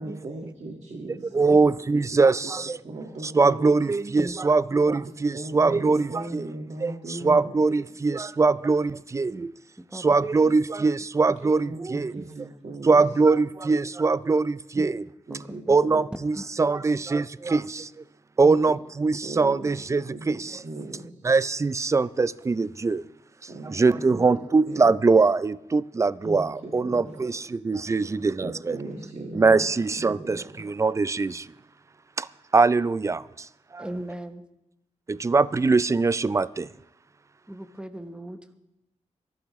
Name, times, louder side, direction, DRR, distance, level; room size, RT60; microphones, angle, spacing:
voice 1, 0.0-1.7 2.1-2.3 2.8-3.7 4.8-5.0 5.3-5.8 6.1-7.6 11.6-13.0 15.3-16.0 18.4-18.6 19.2-21.3 23.5-24.4 24.7-24.9 26.2-27.2 27.8-28.1 28.4-29.6 29.9-30.4, right 2 dB, 60° right, 1.8 m, -38 dB
voice 2, 1.3-2.8 3.3-6.5 6.8-9.5 9.9-12.1 12.8-15.0 15.7-18.0 18.4-20.6 21.2-23.0 23.7-28.8 29.4-31.5 32.2-32.3 32.5-33.9 35.1-36.7, right 4 dB, 25° right, 0.4 m, -22 dB
voice 3, 33.8-34.5 37.5-38.5, right 1 dB, 10° right, 1.0 m, -37 dB
25.0 x 11.5 x 3.1 m
wide cardioid pair, 95°, 13 cm